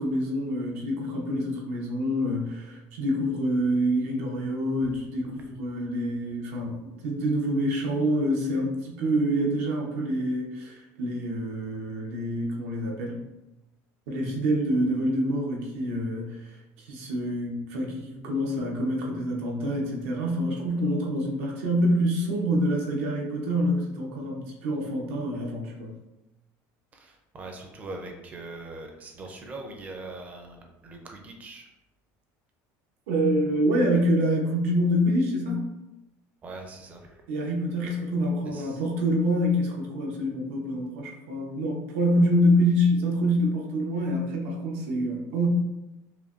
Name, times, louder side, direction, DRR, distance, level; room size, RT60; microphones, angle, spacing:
voice 1, 0.0-13.2 14.1-16.4 16.8-26.0 33.1-35.7 37.3-45.5, equal, 85° right, -1 dB, 0.9 m, -26 dB
voice 2, 26.9-31.7 36.4-37.2 38.5-38.8, right 2 dB, 20° right, 3 dB, 0.5 m, -41 dB
5.6 x 2.2 x 2.5 m, 0.98 s
cardioid pair, 175°, 8 cm